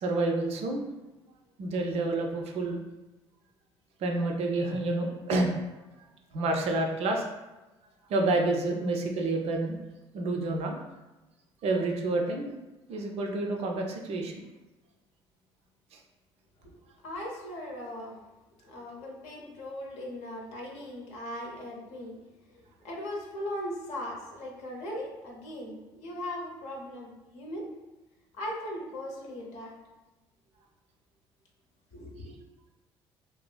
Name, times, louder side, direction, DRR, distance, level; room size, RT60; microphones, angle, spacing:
voice 1, 0.0-0.9 1.6-2.8 4.0-5.5 6.3-7.3 8.1-9.8 10.1-10.8 11.6-12.5 12.9-14.4 15.9-16.0, right 2 dB, 50° right, 2 dB, 0.4 m, -29 dB
voice 2, 17.0-18.2 18.6-22.2 22.5-27.7 28.3-29.7 31.9-32.4, left 1 dB, 60° left, -1 dB, 0.7 m, -39 dB
2.8 x 2.5 x 2.2 m, 1.1 s
figure-of-eight pair, 50°, 14 cm